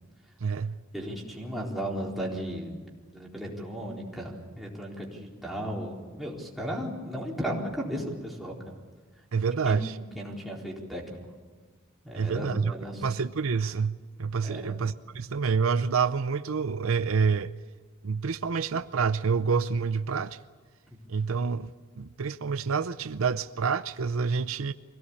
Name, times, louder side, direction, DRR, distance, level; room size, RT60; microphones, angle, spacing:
voice 1, 0.4-0.8 9.3-10.0 12.1-17.5 18.0-20.4 21.1-21.7 22.0-24.7, right 5 dB, 75° right, 0.6 m, -28 dB
voice 2, 0.9-2.8 3.1-8.5 9.6-11.0 12.0-13.0 14.4-14.7, equal, ahead, 4.1 m, -35 dB
24.5 x 17.5 x 8.5 m
head